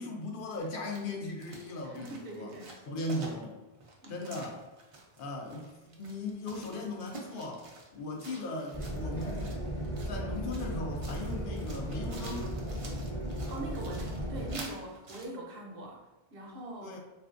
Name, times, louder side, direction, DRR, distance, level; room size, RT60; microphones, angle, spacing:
voice 1, 0.0-2.5 2.9-3.6 4.1-4.6 5.2-9.6 10.1-12.5 16.8-17.0, left 2 dB, 60° left, 1 dB, 0.7 m, -38 dB
sound 1, 0.6-15.3, right 2 dB, 45° right, 0.4 m, -50 dB
voice 2, 1.8-2.8 4.0-4.3 13.5-17.0, right 2 dB, 65° right, -1 dB, 0.8 m, -43 dB
sound 2, 8.7-14.6, equal, 25° left, 0.7 m, -36 dB
3.2 x 2.5 x 2.4 m, 1.1 s
omnidirectional pair, 1.1 m